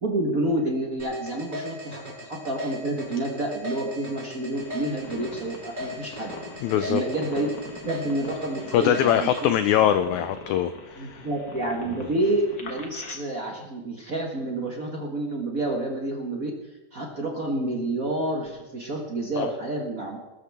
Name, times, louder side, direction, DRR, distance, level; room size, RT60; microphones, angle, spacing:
voice 1, 0.0-6.3 6.7-7.5 7.8-9.6 11.0-16.5 16.9-20.2, right 1 dB, 75° right, 0 dB, 0.8 m, -29 dB
sound 1, 1.0-9.4, left 2 dB, 15° right, 5.5 m, -37 dB
sound 2, 4.5-13.1, left 3 dB, 45° left, 1.2 m, -43 dB
voice 2, 6.6-7.0 8.7-11.3 19.4-19.5, left 10 dB, 90° left, 11 dB, 1.6 m, -22 dB
21.0 x 13.5 x 3.5 m, 1.1 s
omnidirectional pair, 4.0 m